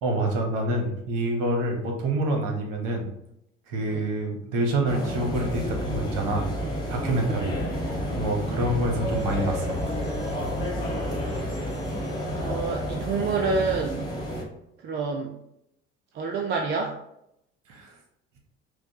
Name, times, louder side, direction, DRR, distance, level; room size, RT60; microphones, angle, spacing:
voice 1, 0.0-3.1 3.7-6.5 6.9-9.8 17.7-17.9, right 1 dB, 55° right, 3 dB, 0.9 m, -27 dB
sound 1, 4.8-14.4, equal, 10° left, 1.4 m, -30 dB
voice 2, 12.3-14.1 14.8-15.3 16.1-16.9, right 4 dB, 30° right, 2 dB, 0.4 m, -28 dB
4.6 x 2.1 x 2.9 m, 0.78 s
figure-of-eight pair, 60°, 36 cm